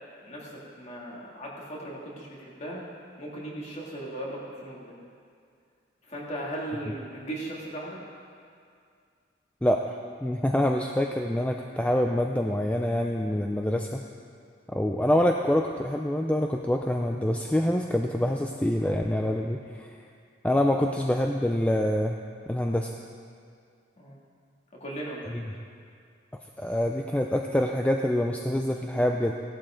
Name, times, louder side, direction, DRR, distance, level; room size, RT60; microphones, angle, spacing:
voice 1, 0.2-2.8 3.2-5.0 6.1-8.0 24.0-24.2 24.8-25.6, right 1 dB, 35° left, -4 dB, 2.5 m, -37 dB
voice 2, 10.2-14.0 14.7-19.9 20.4-22.2 22.5-22.9 25.3-25.4 26.6-29.3, left 1 dB, 5° left, 2 dB, 0.4 m, -26 dB
16.0 x 11.5 x 3.8 m, 2.2 s
head